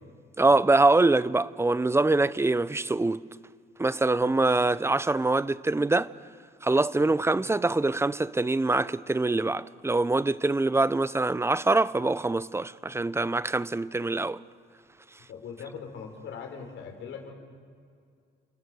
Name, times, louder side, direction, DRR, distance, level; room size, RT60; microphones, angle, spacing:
voice 1, 0.4-3.2 3.8-6.1 6.6-14.4, right 2 dB, 15° right, 0.7 m, -24 dB
voice 2, 15.3-17.3, left 6 dB, 80° left, 4.7 m, -41 dB
29.0 x 28.0 x 6.4 m
cardioid pair, 90°, 20 cm